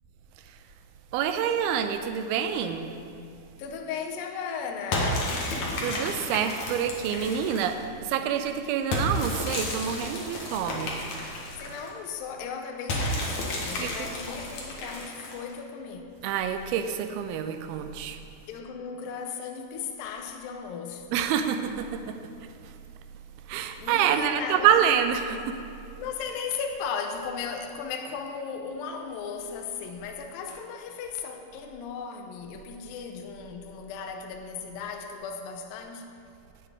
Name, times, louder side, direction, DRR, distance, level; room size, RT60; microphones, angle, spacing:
voice 1, 1.1-2.9 5.8-11.0 13.8-14.1 16.2-18.2 21.1-22.2 23.5-25.6, right 8 dB, 80° right, 8 dB, 2.4 m, -27 dB
voice 2, 3.6-5.4 11.5-16.1 18.5-21.2 23.8-24.8 26.0-36.1, left 6 dB, 75° left, 4 dB, 2.3 m, -36 dB
sound 1, 4.9-7.8 8.9-11.9 12.9-15.5, left 1 dB, 55° left, 2.3 m, -32 dB
17.0 x 7.7 x 3.7 m, 2.6 s
omnidirectional pair, 4.6 m